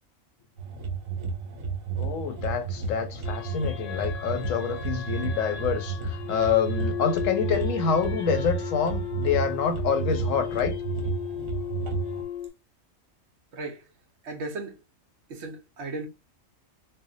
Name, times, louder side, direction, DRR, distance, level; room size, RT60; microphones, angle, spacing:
sound 1, 0.6-12.2, right 5 dB, 85° right, 1.2 m, -32 dB
voice 1, 2.0-10.8, left 6 dB, 75° left, 1.0 m, -27 dB
sound 2, 3.2-12.5, left 9 dB, 50° left, 0.7 m, -36 dB
voice 2, 13.5-13.9 14.2-14.8 15.3-16.1, right 2 dB, 60° right, 0.9 m, -36 dB
3.4 x 2.0 x 2.6 m
omnidirectional pair, 1.4 m